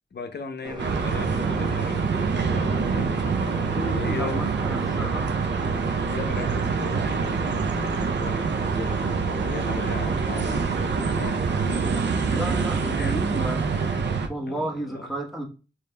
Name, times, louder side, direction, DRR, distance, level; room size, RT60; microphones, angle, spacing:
voice 1, 0.1-5.4 5.7-11.9 12.3-12.6 12.9-13.2 13.6-14.1 14.4-15.1, left 4 dB, 70° left, 0.6 m, -38 dB
sound 1, 0.6-13.3, right 1 dB, 25° right, 0.8 m, -39 dB
sound 2, 0.8-14.3, right 5 dB, 80° right, 0.5 m, -25 dB
voice 2, 3.8-5.3 12.0-13.6 14.3-15.4, right 1 dB, ahead, 1.1 m, -32 dB
5.0 x 2.9 x 2.2 m
wide cardioid pair, 90°, 18 cm